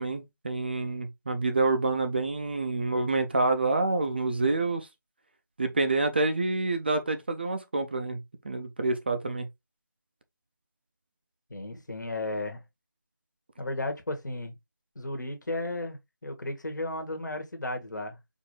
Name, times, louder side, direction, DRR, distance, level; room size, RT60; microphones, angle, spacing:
voice 1, 0.0-4.9 5.6-9.5, right 3 dB, 30° right, 0.4 m, -27 dB
voice 2, 11.5-12.6 13.6-14.5 14.9-18.2, left 2 dB, 60° left, 1.4 m, -34 dB
4.6 x 2.6 x 3.1 m
figure-of-eight pair, 165°, 11 cm